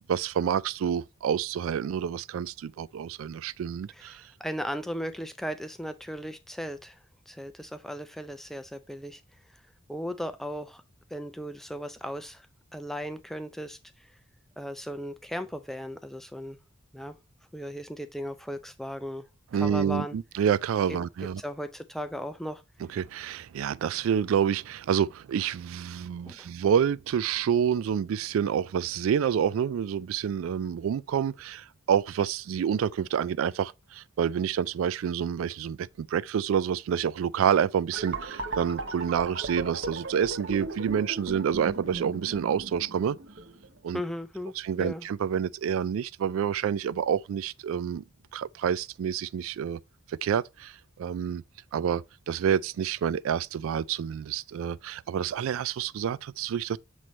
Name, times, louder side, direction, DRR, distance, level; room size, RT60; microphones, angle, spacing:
voice 1, 0.1-4.2 19.5-21.4 22.9-43.2 43.8-44.0 44.6-48.0 48.3-49.8 50.1-51.4 51.7-56.8, right 8 dB, 85° right, 0.3 m, -28 dB
voice 2, 3.9-7.0 7.3-9.2 9.5-9.6 9.9-10.8 11.1-12.5 12.7-14.1 14.6-16.6 16.9-17.1 17.5-19.3 19.5-20.2 21.4-22.6 26.3-26.5 43.9-45.0, equal, ahead, 0.4 m, -37 dB
sound 1, 37.9-43.8, right 3 dB, 65° right, 0.9 m, -37 dB
7.6 x 3.2 x 4.1 m
head